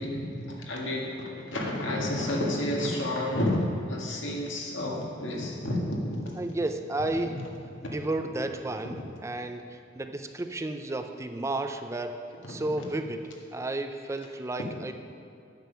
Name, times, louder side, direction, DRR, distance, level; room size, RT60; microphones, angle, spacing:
voice 1, 0.0-3.6 3.9-6.3 12.5-12.6, left 1 dB, 80° left, -2 dB, 1.7 m, -30 dB
voice 2, 6.3-7.5 7.8-12.2 12.5-13.2 13.5-14.9, right 2 dB, 15° right, 7 dB, 0.4 m, -32 dB
9.1 x 7.3 x 5.6 m, 2.4 s
head